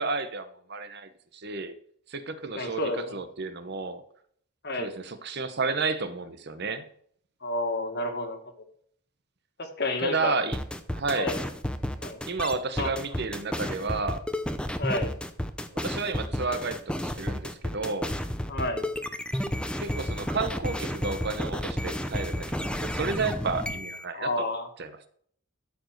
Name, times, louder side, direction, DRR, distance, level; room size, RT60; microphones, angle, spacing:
voice 1, 0.0-1.7 2.1-2.8 3.1-4.0 4.8-6.8 10.0-10.6 10.9-11.3 12.3-14.2 15.7-18.1 19.8-24.5 24.8-25.1, right 4 dB, 50° right, 11 dB, 0.8 m, -31 dB
voice 2, 2.6-3.2 4.6-4.9 7.4-8.4 9.6-10.4 11.2-11.4 12.0-12.2 12.8-12.9 14.8-15.1 18.5-18.9 24.1-24.7, left 2 dB, 45° left, 6 dB, 1.7 m, -30 dB
sound 1, 10.5-24.0, equal, 5° left, 0.6 m, -31 dB
13.0 x 4.9 x 6.5 m, 0.63 s
head